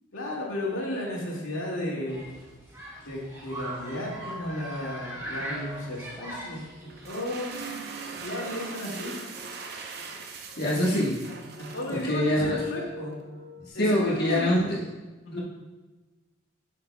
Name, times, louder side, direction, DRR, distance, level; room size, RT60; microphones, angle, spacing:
voice 1, 0.1-2.2 3.0-7.8 8.2-9.1 11.6-13.2 13.7-14.7 15.2-15.4, left 1 dB, 75° left, -4 dB, 2.1 m, -34 dB
Human group actions, 2.1-7.1, right 1 dB, 15° right, 2.3 m, -40 dB
sound 1, 4.0-13.7, left 2 dB, 80° right, 2.4 m, -44 dB
sound 2, 6.9-12.5, right 4 dB, 50° right, 0.7 m, -41 dB
voice 2, 10.6-11.1 11.9-12.6 13.8-14.6 15.3-15.4, left 1 dB, 50° left, -4 dB, 1.3 m, -24 dB
10.5 x 6.6 x 2.2 m, 1.2 s
head